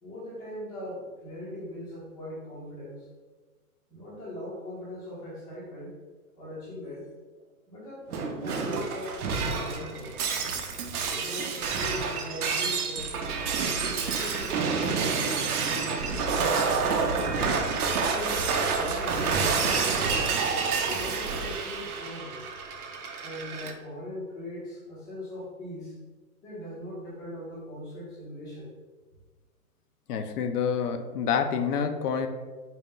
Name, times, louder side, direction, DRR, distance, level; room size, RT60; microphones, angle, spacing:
voice 1, 0.0-3.1 3.9-6.0 6.3-7.0 7.7-10.1 11.1-13.3 13.8-15.1 15.7-16.3 17.1-20.2 20.7-22.4 23.2-25.9 26.4-28.7, left 1 dB, 10° left, -7 dB, 0.5 m, -40 dB
Shatter, 8.1-23.7, right 5 dB, 75° right, 0.7 m, -28 dB
voice 2, 30.1-32.3, left 6 dB, 85° left, 7 dB, 0.6 m, -27 dB
4.1 x 2.1 x 3.6 m, 1.3 s
hypercardioid pair, 145°, 45 cm